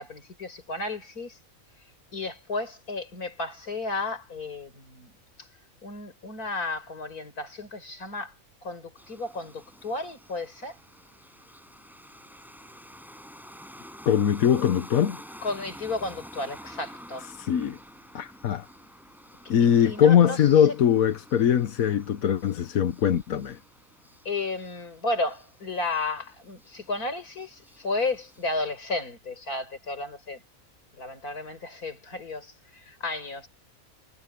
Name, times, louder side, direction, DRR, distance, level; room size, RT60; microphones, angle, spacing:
voice 1, 0.0-1.4 2.1-5.1 5.4-5.5 5.8-8.3 8.6-10.8 15.4-17.2 19.6-20.5 24.3-30.4 30.9-33.5, left 2 dB, 90° left, 5.3 m, -33 dB
sound 1, 9.0-28.6, equal, ahead, 5.2 m, -49 dB
voice 2, 14.1-15.2 17.4-17.8 18.1-18.7 19.5-23.6, left 9 dB, 75° left, 1.4 m, -21 dB
omnidirectional pair, 1.5 m